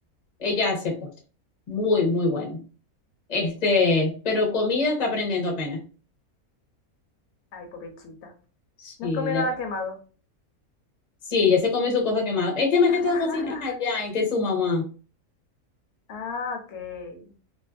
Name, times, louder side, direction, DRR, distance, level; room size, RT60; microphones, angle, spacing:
voice 1, 0.4-1.1 1.7-2.6 3.3-5.8 8.8-9.5 11.3-14.8, left 4 dB, 35° left, 0 dB, 0.8 m, -24 dB
voice 2, 7.5-8.3 9.0-10.0 12.9-13.8 16.1-17.2, left 3 dB, 90° left, 3 dB, 1.3 m, -32 dB
2.5 x 2.5 x 2.4 m, 0.37 s
omnidirectional pair, 1.6 m